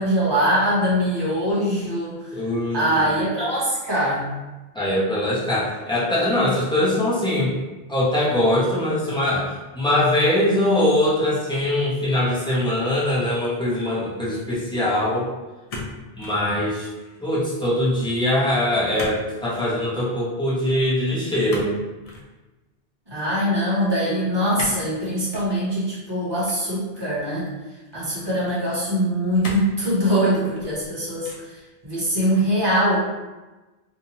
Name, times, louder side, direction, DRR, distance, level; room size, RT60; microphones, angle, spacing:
voice 1, 0.0-2.4 2.7-4.3 23.1-27.5 27.9-31.6 31.8-33.0, equal, 25° right, -7 dB, 0.9 m, -22 dB
voice 2, 2.3-3.1 4.7-7.6 7.9-15.3 16.2-16.9 17.2-21.7, left 1 dB, 5° left, -9 dB, 0.7 m, -22 dB
sound 1, 15.7-16.4 16.8-17.2 19.0-19.2 19.5-19.7 21.5-22.3 24.5-24.9 25.3-25.5 26.4-27.2 27.9-28.0 29.4-29.8 30.4-30.9 31.2-31.6, left 2 dB, 50° left, 0.5 m, -35 dB
2.7 x 2.2 x 2.9 m, 1.1 s
omnidirectional pair, 1.0 m